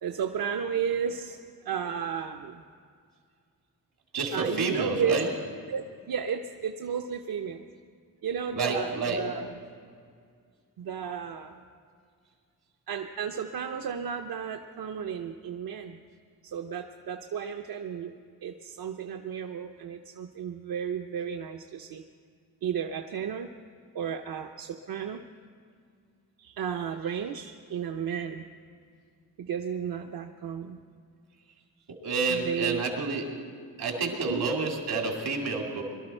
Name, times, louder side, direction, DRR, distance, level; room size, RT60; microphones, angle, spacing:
voice 1, 0.0-2.6 4.3-5.2 5.7-7.7 8.2-9.5 10.8-11.6 12.9-16.0 16.4-18.1 18.4-22.0 22.6-23.5 23.9-25.2 26.4-28.4 29.4-30.8 32.3-32.8 34.3-34.5, right 7 dB, 70° right, 5 dB, 0.6 m, -33 dB
voice 2, 4.1-5.3 8.5-9.2 31.9-33.3 33.8-35.8, right 4 dB, 90° right, 1 dB, 2.7 m, -29 dB
22.0 x 12.5 x 4.4 m, 2.2 s
wide cardioid pair, 120°, 37 cm